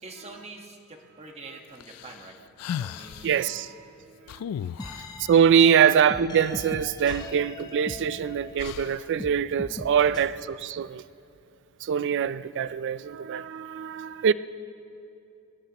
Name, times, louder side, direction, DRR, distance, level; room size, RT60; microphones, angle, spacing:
voice 1, 0.0-2.4 2.7-3.7 4.6-5.0 5.8-5.9 7.5-7.8 10.0-10.1, right 3 dB, 30° right, 1.3 m, -44 dB
sound 1, 1.8-3.4 4.3-5.2 6.7-6.8 7.0-8.0 8.6-9.1, left 9 dB, 90° left, 0.3 m, -36 dB
voice 2, 3.2-3.8 4.2-4.4 5.3-11.0 11.8-14.3, right 8 dB, 55° right, 0.3 m, -23 dB
sound 2, 4.8-8.9 9.2-10.2, left 2 dB, 20° left, 0.8 m, -40 dB
23.5 x 19.5 x 2.9 m
head